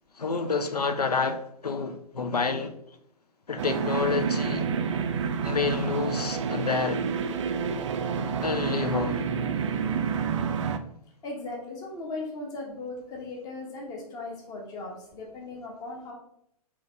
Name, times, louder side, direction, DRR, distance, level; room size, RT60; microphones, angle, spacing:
voice 1, 0.2-2.7 3.5-4.7 5.4-7.0 8.4-9.2, left 4 dB, 85° left, 0.5 m, -28 dB
sound 1, 3.6-10.8, right 6 dB, 50° right, 0.4 m, -29 dB
voice 2, 11.2-16.1, left 2 dB, 20° left, 0.9 m, -38 dB
3.9 x 3.0 x 3.5 m
figure-of-eight pair, 115°, 20 cm